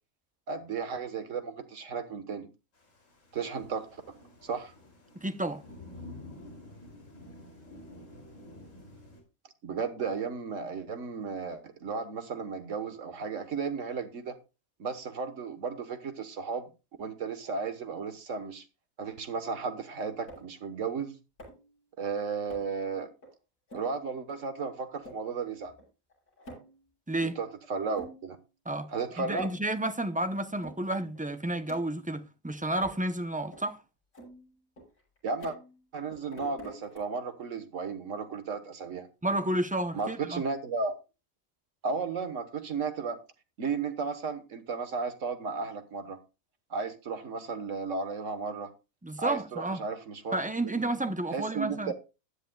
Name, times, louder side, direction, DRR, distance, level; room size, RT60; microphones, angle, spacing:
voice 1, 0.5-2.5 3.3-4.0 4.4-4.7 9.6-14.4 14.8-16.7 17.0-18.6 19.0-21.2 22.0-23.1 23.7-25.7 27.2-28.4 28.9-29.5 35.2-35.6 35.9-39.1 39.9-40.9 41.8-43.2 43.6-46.2 46.7-48.7 49.2-50.7 51.3-51.9, right 5 dB, 65° right, 1.6 m, -34 dB
Thunder / Rain, 2.8-9.2, left 1 dB, 60° left, 3.3 m, -49 dB
voice 2, 5.2-5.6 27.1-27.4 28.7-28.9 29.2-33.8 39.2-40.4 49.0-49.8 50.3-51.9, right 1 dB, 15° right, 0.3 m, -31 dB
sound 1, 20.3-20.6 21.4-21.7 22.5-22.8 23.2-23.3 23.7-23.9 24.4-24.5 24.9-25.2 25.8-25.9 26.1-26.8 27.3-27.4 27.8-28.4 28.8-28.9 29.2-29.7 30.0-30.1 30.6-30.8 31.1-32.1 32.8-33.0 33.5-33.6 34.1-35.8 36.1-37.0, right 1 dB, 80° left, 6.9 m, -48 dB
15.0 x 10.5 x 2.3 m
omnidirectional pair, 1.5 m